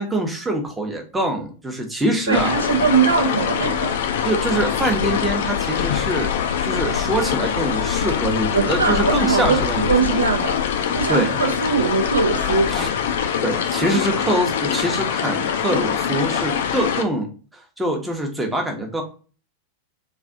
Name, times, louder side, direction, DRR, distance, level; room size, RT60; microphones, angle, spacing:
voice 1, 0.0-2.6 4.2-6.3 6.6-9.9 11.1-11.4 12.7-12.9 13.4-19.0, right 1 dB, 10° right, 0.8 m, -24 dB
sound 1, 2.3-17.0, left 8 dB, 55° left, 0.4 m, -23 dB
voice 2, 2.3-4.0 8.5-12.7, right 5 dB, 80° right, 0.6 m, -21 dB
3.3 x 2.4 x 3.7 m
figure-of-eight pair, 90°, 0 cm